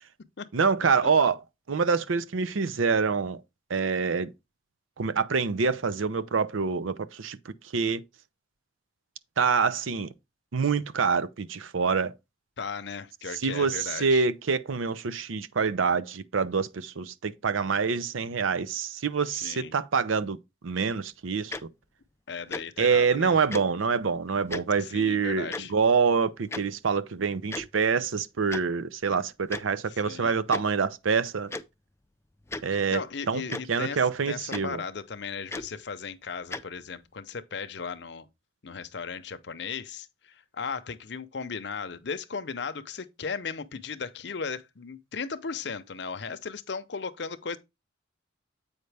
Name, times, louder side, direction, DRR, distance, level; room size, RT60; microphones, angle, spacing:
voice 1, 0.5-1.4 1.7-3.4 3.7-4.3 5.0-7.4 7.7-8.0 9.4-10.1 10.5-12.1 13.4-20.4 20.6-21.6 22.8-31.5 32.6-33.0 33.3-33.4 33.7-34.8, right 5 dB, 85° right, 0.6 m, -26 dB
voice 2, 12.6-14.3 19.3-19.7 22.3-23.4 24.8-25.7 29.9-30.3 32.7-38.3 38.6-47.6, left 5 dB, 60° left, 0.6 m, -36 dB
Tick-tock, 21.5-21.6 22.5-22.6 23.5-23.6 24.5-24.6 25.5-25.6 26.5-26.6 27.5-27.7 28.5-28.6 29.5-29.6 30.5-30.6 31.5-31.6 32.5-32.6 33.5-33.6 34.5-34.6 35.5-35.7 36.5-36.6, left 3 dB, 15° left, 0.3 m, -34 dB
8.0 x 5.3 x 3.3 m
head